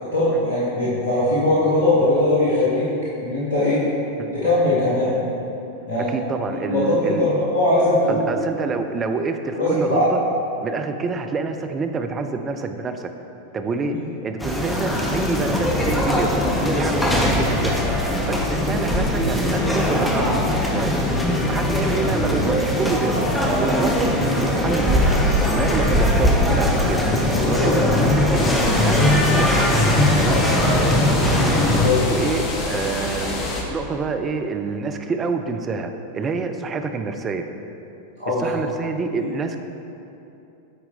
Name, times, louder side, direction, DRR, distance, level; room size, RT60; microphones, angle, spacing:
voice 1, 0.1-2.9 3.2-3.8 4.3-5.2 5.9-6.1 6.7-8.3 9.5-10.0 13.9-14.0 21.7-21.8 27.3-27.7 31.6-32.0 38.2-38.4 39.2-39.3, left 2 dB, 70° left, -10 dB, 1.4 m, -20 dB
voice 2, 6.1-7.3 8.1-10.2 10.6-13.1 13.5-14.0 14.2-17.8 18.3-20.9 21.5-23.3 23.6-24.1 24.4-25.2 25.5-27.0 27.4-29.8 30.2-30.4 32.1-37.5 38.4-39.6, right 4 dB, 25° right, 6 dB, 0.5 m, -27 dB
bike walking entering bar, 14.4-31.9, left 1 dB, 5° left, 0.9 m, -20 dB
sound 1, 28.3-33.6, left 2 dB, 30° left, 1.0 m, -27 dB
8.6 x 4.3 x 4.2 m, 2.8 s
figure-of-eight pair, 90°, 0 cm